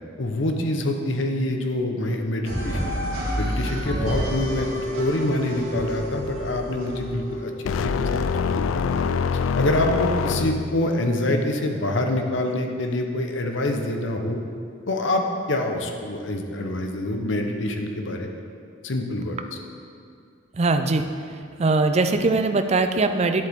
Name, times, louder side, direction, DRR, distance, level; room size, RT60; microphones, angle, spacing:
voice 1, 0.2-2.9 3.4-7.5 7.8-9.1 9.6-14.4 14.9-18.3 18.8-19.6, left 1 dB, 65° left, 3 dB, 0.9 m, -26 dB
sound 1, 2.4-7.3, equal, 80° right, 2.6 m, -30 dB
sound 2, 4.1-15.2, left 1 dB, 5° right, 2.4 m, -37 dB
sound 3, 7.7-10.9, left 6 dB, 85° left, 0.3 m, -25 dB
voice 2, 20.6-21.1 21.6-23.5, right 3 dB, 35° right, 8 dB, 0.4 m, -21 dB
10.5 x 7.8 x 3.6 m, 2.3 s
head